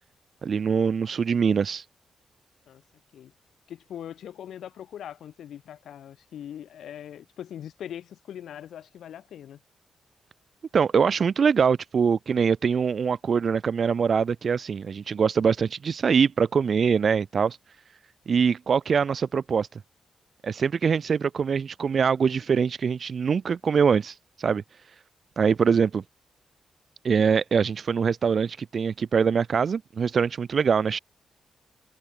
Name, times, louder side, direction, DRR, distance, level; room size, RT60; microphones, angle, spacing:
voice 1, 0.4-1.8 10.7-17.6 18.3-19.7 20.4-24.6 25.4-26.0 27.0-31.0, right 6 dB, 50° right, 0.4 m, -23 dB
voice 2, 3.7-9.6, left 10 dB, 85° left, 1.0 m, -41 dB
cardioid pair, 105°, 0 cm